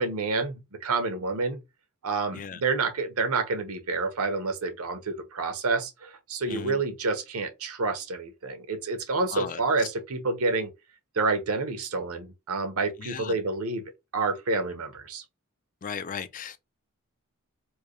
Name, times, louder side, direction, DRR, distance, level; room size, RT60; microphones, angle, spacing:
voice 1, 0.0-1.6 2.0-10.7 11.1-13.8 14.1-15.2, right 3 dB, 70° right, 0.9 m, -28 dB
voice 2, 6.5-6.8 9.3-9.9 13.0-13.4 15.8-16.6, left 7 dB, 35° left, 0.4 m, -37 dB
4.6 x 2.2 x 3.1 m
head